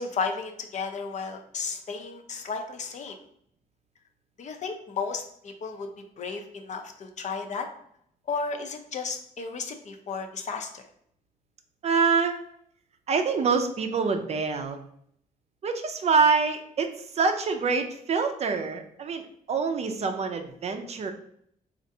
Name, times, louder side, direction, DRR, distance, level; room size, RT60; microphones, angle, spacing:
voice 1, 0.0-3.2 4.4-5.9 6.2-7.7 8.3-10.9, left 4 dB, 50° left, 4 dB, 0.5 m, -33 dB
voice 2, 11.8-12.4 13.1-14.8 15.6-21.1, right 5 dB, 45° right, 6 dB, 0.5 m, -26 dB
4.2 x 2.4 x 2.7 m, 0.67 s
cardioid pair, 120°, 15 cm